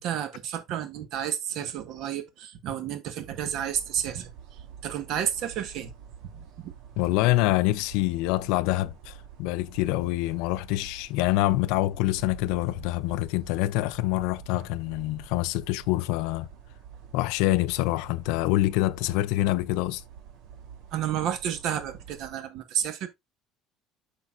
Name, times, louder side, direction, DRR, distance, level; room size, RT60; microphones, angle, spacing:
voice 1, 0.0-4.3 4.8-5.9 6.3-6.7 20.9-23.1, right 9 dB, 50° right, 1.3 m, -31 dB
sound 1, 3.2-22.4, right 8 dB, 80° right, 2.2 m, -47 dB
voice 2, 7.0-16.5 17.1-20.0, left 18 dB, 75° left, 0.4 m, -26 dB
8.0 x 6.0 x 2.5 m
cardioid pair, 170°, 0 cm